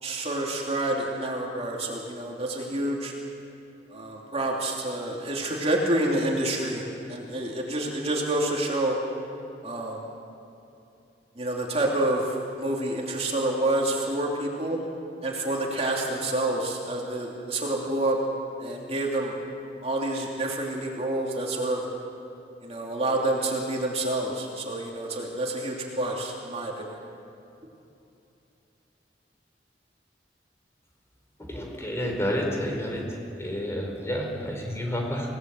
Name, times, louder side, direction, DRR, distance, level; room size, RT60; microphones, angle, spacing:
voice 1, 0.0-3.1 3.9-9.0 9.6-10.0 11.4-14.8 15.2-18.2 18.6-19.3 19.8-21.8 22.6-27.0, right 1 dB, 35° right, -1 dB, 2.9 m, -28 dB
voice 2, 31.5-33.1 33.4-35.4, equal, 15° left, 0 dB, 4.6 m, -30 dB
28.5 x 18.5 x 7.9 m, 2.8 s
head